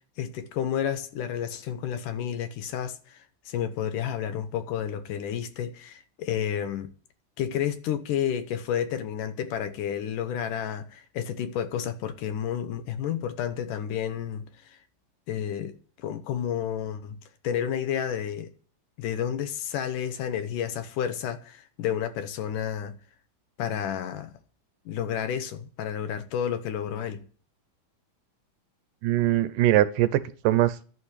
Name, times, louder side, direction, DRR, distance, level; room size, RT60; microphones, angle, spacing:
voice 1, 0.2-6.9 7.4-14.8 15.3-17.2 17.4-18.5 19.0-22.9 23.6-24.3 24.9-27.2, left 9 dB, 70° left, 2.4 m, -31 dB
voice 2, 29.0-30.9, right 14 dB, 75° right, 2.3 m, -22 dB
11.5 x 8.7 x 8.2 m
omnidirectional pair, 4.0 m